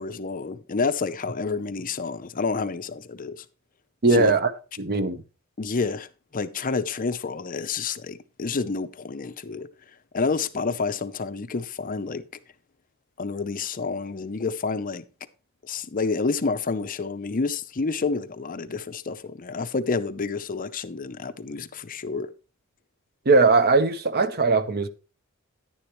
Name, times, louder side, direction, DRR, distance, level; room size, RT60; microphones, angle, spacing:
voice 1, 0.0-3.4 4.1-4.3 5.6-9.7 10.1-12.2 13.2-15.0 15.6-22.3, left 4 dB, 40° left, 0.6 m, -29 dB
voice 2, 4.0-4.5 4.8-5.2 23.3-24.9, right 3 dB, 50° right, 0.8 m, -19 dB
10.0 x 10.0 x 3.1 m
head